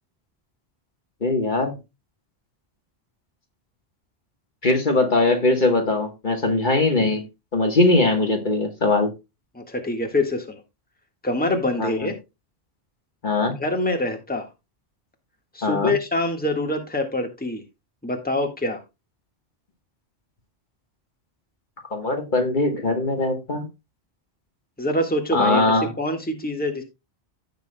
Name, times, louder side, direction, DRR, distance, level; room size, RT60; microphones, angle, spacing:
voice 1, 1.2-1.8 4.6-7.2 7.5-9.1 11.8-12.1 13.2-13.5 15.6-15.9 21.9-23.7 25.3-25.9, left 2 dB, 50° left, 1.6 m, -21 dB
voice 2, 9.5-10.6 11.2-12.1 13.6-14.5 15.5-17.6 18.0-18.8 24.8-25.7 26.0-26.8, left 1 dB, 10° left, 1.6 m, -25 dB
16.0 x 5.9 x 2.2 m
omnidirectional pair, 1.1 m